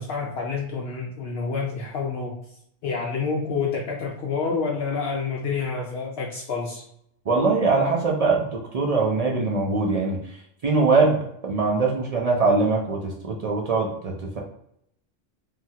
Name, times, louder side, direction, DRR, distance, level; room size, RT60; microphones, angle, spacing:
voice 1, 0.0-2.4 2.8-6.8, left 5 dB, 65° left, -1 dB, 0.7 m, -28 dB
voice 2, 7.3-10.4 10.6-14.4, right 3 dB, 60° right, -1 dB, 0.4 m, -22 dB
3.2 x 2.2 x 2.7 m, 0.74 s
omnidirectional pair, 1.2 m